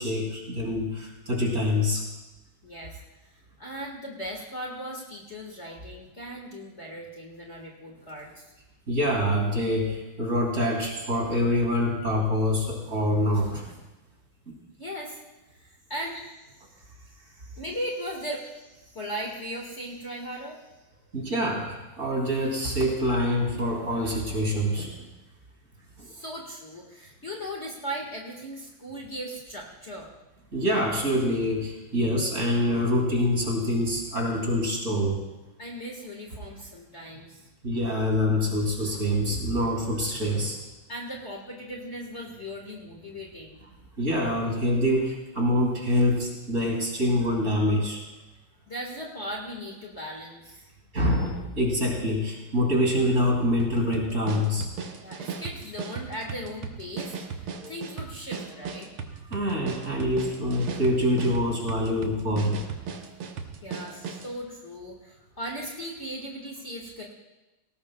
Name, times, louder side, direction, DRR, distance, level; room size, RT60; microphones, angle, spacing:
voice 1, 0.0-2.0 8.9-13.7 14.5-14.6 21.1-24.9 26.0-26.1 30.5-35.2 37.6-40.6 44.0-48.0 50.9-54.7 57.6-57.7 59.3-62.6, left 1 dB, 35° right, -1 dB, 3.0 m, -25 dB
voice 2, 2.6-8.5 14.8-15.2 15.5-16.2 17.1-20.7 26.0-30.1 35.6-37.4 40.9-43.6 48.7-50.7 55.0-58.9 63.6-67.0, equal, 35° left, -1 dB, 1.8 m, -38 dB
sound 1, 53.6-64.3, right 6 dB, 90° right, 1.9 m, -37 dB
19.0 x 18.0 x 2.3 m, 1.0 s
omnidirectional pair, 2.3 m